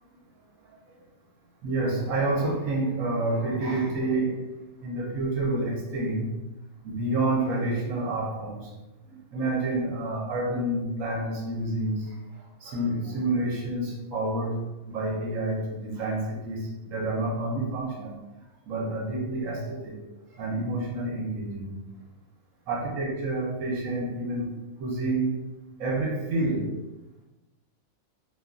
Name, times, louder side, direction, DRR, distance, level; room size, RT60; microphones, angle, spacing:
voice 1, 1.6-4.4 4.8-6.3 6.8-8.7 9.1-12.1 12.6-18.2 18.7-20.0 20.3-21.8 22.7-24.5 24.8-25.4 25.8-26.6, right 2 dB, 70° right, -3 dB, 1.1 m, -28 dB
2.9 x 2.2 x 2.5 m, 1.0 s
omnidirectional pair, 1.5 m